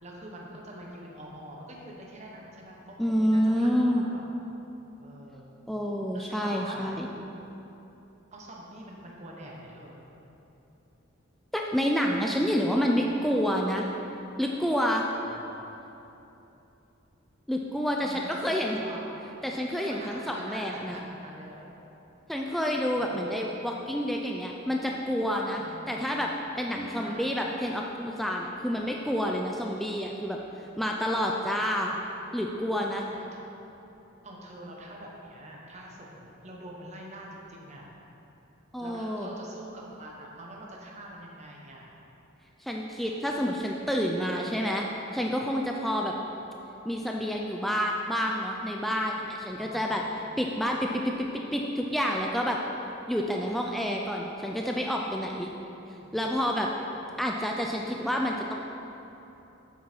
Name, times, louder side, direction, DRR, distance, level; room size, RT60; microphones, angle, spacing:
voice 1, 0.0-4.2 5.0-5.5 6.1-6.9 8.3-10.0 15.2-15.7 18.0-19.1 19.9-21.8 22.9-23.4 25.6-26.0 26.8-27.2 33.1-33.4 34.2-37.9 38.8-41.9 49.6-50.0 56.0-56.3, right 1 dB, 35° right, -2 dB, 1.2 m, -45 dB
voice 2, 3.0-4.1 5.7-7.1 11.5-13.9 14.4-15.0 17.5-18.8 19.4-21.0 22.3-25.6 25.9-26.3 26.6-30.4 30.8-32.0 32.3-33.1 38.7-39.3 42.6-44.8 45.1-46.1 46.9-50.0 50.4-52.6 53.1-55.5 56.1-56.7 57.2-58.5, equal, ahead, -1 dB, 0.3 m, -28 dB
7.5 x 7.0 x 4.5 m, 3.0 s
head